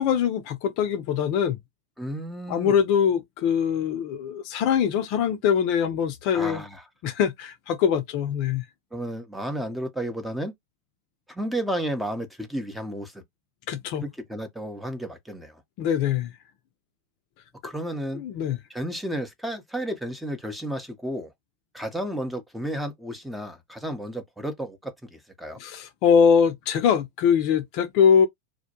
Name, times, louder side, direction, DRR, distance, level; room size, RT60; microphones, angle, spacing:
voice 1, 0.0-1.6 2.5-6.6 7.0-8.6 13.7-14.0 15.8-16.3 18.2-18.6 25.6-28.3, left 7 dB, 45° left, 0.5 m, -22 dB
voice 2, 2.0-2.8 6.3-6.9 8.9-10.5 11.3-13.2 14.0-15.5 17.6-18.2 18.7-21.3 21.7-25.6, right 1 dB, 5° right, 0.6 m, -32 dB
2.1 x 2.1 x 2.8 m
figure-of-eight pair, 90°, 0 cm